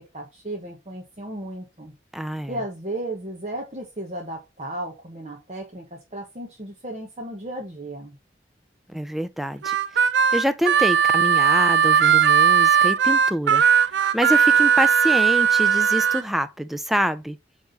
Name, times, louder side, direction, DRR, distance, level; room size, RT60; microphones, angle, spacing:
voice 1, 0.1-1.9 2.5-8.1, right 1 dB, 35° right, 1.3 m, -34 dB
voice 2, 2.1-2.5 8.9-13.9 14.1-17.4, equal, ahead, 0.4 m, -26 dB
Harmonica, 9.6-16.2, right 7 dB, 75° right, 0.4 m, -18 dB
8.1 x 3.6 x 3.9 m
head